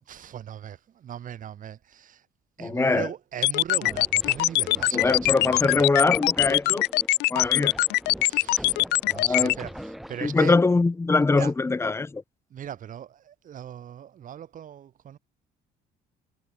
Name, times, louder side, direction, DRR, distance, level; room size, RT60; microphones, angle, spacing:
voice 1, 0.1-2.2 2.6-5.8 8.3-10.6 11.4-11.5 12.5-15.2, right 10 dB, 50° right, 2.8 m, -39 dB
voice 2, 2.6-3.1 4.9-6.8 7.3-7.7 9.1-9.6 10.2-12.2, left 3 dB, 15° left, 1.1 m, -23 dB
sound 1, 3.4-9.5, left 19 dB, 85° left, 1.0 m, -22 dB
Crazed twang scenarios, 3.8-10.4, equal, ahead, 7.4 m, -43 dB
cardioid pair, 110°, 17 cm